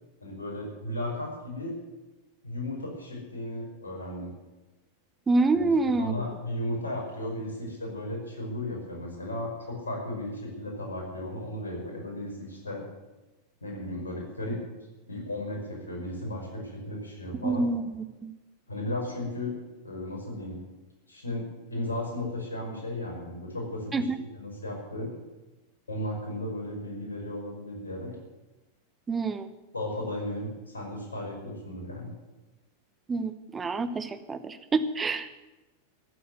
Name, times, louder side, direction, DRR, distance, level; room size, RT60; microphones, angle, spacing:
voice 1, 0.2-1.8 2.4-4.3 5.5-12.8 13.6-14.6 15.1-17.7 18.7-19.5 19.8-20.6 21.1-25.1 25.9-28.1 29.7-32.1, left 1 dB, 75° left, 0 dB, 5.5 m, -35 dB
voice 2, 5.3-6.1 17.4-17.8 18.2-18.3 23.9-24.0 29.1-29.5 33.1-35.3, right 3 dB, 15° right, 11 dB, 1.0 m, -26 dB
14.5 x 8.5 x 9.4 m, 1.1 s
figure-of-eight pair, 90°, 0 cm